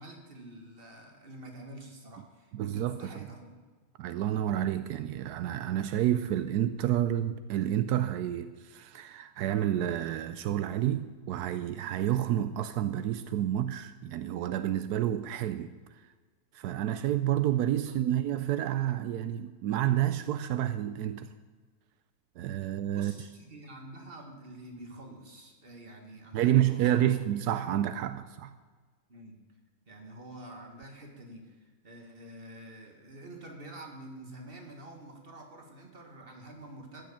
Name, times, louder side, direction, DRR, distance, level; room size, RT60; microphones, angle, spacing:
voice 1, 0.0-3.5 17.8-18.0 22.9-27.3 29.1-29.4 29.9-37.1, right 1 dB, 35° right, 2.1 m, -47 dB
voice 2, 2.5-3.1 4.0-15.7 16.5-21.3 22.4-23.1 26.3-28.5, right 11 dB, 85° right, 1.1 m, -29 dB
15.0 x 6.7 x 8.6 m
omnidirectional pair, 1.6 m